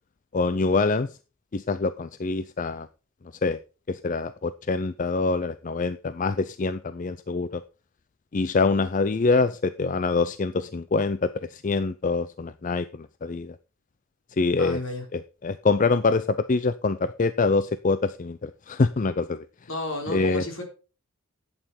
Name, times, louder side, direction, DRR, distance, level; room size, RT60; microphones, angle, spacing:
voice 1, 0.3-1.1 1.5-2.9 3.4-3.6 3.9-7.6 8.3-13.6 14.4-14.8 15.1-19.5 20.1-20.4, left 3 dB, 35° left, 14 dB, 0.4 m, -25 dB
voice 2, 14.6-15.0 19.7-20.6, left 2 dB, 65° left, 2 dB, 3.9 m, -32 dB
11.0 x 8.7 x 4.3 m, 0.34 s
head